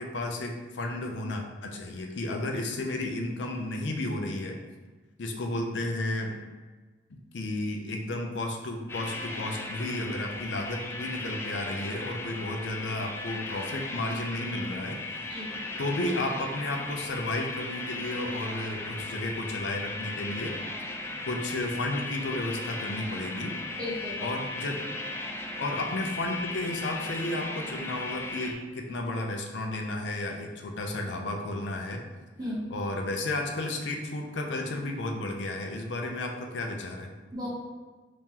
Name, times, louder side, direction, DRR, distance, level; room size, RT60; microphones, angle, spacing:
voice 1, 0.0-4.6 5.2-6.4 7.1-15.4 15.8-20.6 21.3-23.6 24.2-24.9 25.6-32.0 32.7-37.1, left 2 dB, 85° left, 3 dB, 0.5 m, -33 dB
sound 1, 8.9-28.5, left 2 dB, 15° left, 0.3 m, -37 dB
voice 2, 23.8-24.3 32.4-32.7 37.3-37.5, left 1 dB, 25° right, -6 dB, 0.9 m, -35 dB
3.6 x 3.0 x 2.8 m, 1.3 s
head